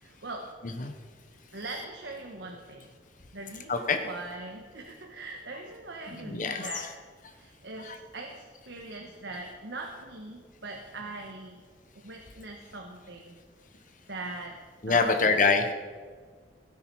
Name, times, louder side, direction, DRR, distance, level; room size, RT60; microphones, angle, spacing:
voice 1, 0.0-0.6 1.5-2.9 3.3-6.9 7.3-11.6 11.9-13.4 14.1-15.2, right 2 dB, 70° right, 2 dB, 1.3 m, -41 dB
voice 2, 6.1-6.9 7.8-8.0 14.8-15.7, left 4 dB, 45° left, 5 dB, 1.0 m, -26 dB
16.5 x 9.7 x 4.7 m, 1.5 s
head